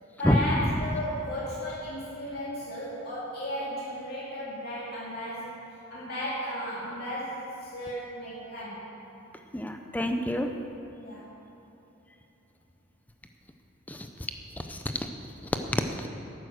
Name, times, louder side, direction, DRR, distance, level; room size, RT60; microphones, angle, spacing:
voice 1, 0.2-5.5 5.9-8.8 10.9-11.3, equal, 45° left, -9 dB, 2.6 m, -35 dB
voice 2, 9.5-10.5 13.9-14.1 14.6-15.1 15.7-16.1, left 1 dB, 10° left, 5 dB, 0.5 m, -27 dB
11.0 x 9.3 x 6.4 m, 3.0 s
head